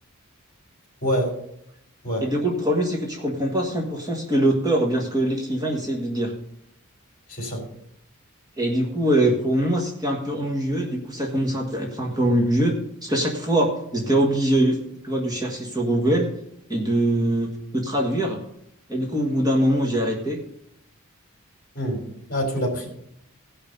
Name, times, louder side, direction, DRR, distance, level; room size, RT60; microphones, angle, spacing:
voice 1, 1.0-1.3 2.0-2.3 7.3-7.6 21.8-22.0 22.3-22.9, equal, 40° left, 2 dB, 3.5 m, -25 dB
voice 2, 2.2-6.3 8.6-12.7 13.0-14.8 15.0-16.3 16.7-18.4 18.9-20.4, right 1 dB, 15° right, -1 dB, 1.6 m, -23 dB
17.0 x 5.8 x 5.3 m, 0.76 s
head